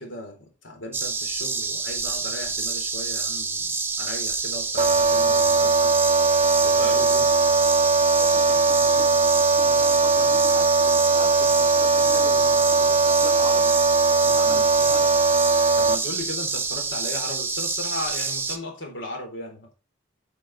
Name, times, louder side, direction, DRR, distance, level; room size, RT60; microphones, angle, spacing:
voice 1, 0.0-5.9 6.2-7.4 14.4-14.7 15.8-19.7, left 1 dB, 70° left, 3 dB, 4.0 m, -36 dB
sound 1, 0.9-18.6, right 4 dB, 10° right, 0.9 m, -28 dB
sound 2, 4.8-16.0, right 3 dB, 30° right, 0.6 m, -20 dB
voice 2, 8.1-13.8 14.2-15.2, left 1 dB, 10° left, 4 dB, 1.5 m, -41 dB
11.5 x 6.5 x 4.2 m, 0.29 s
head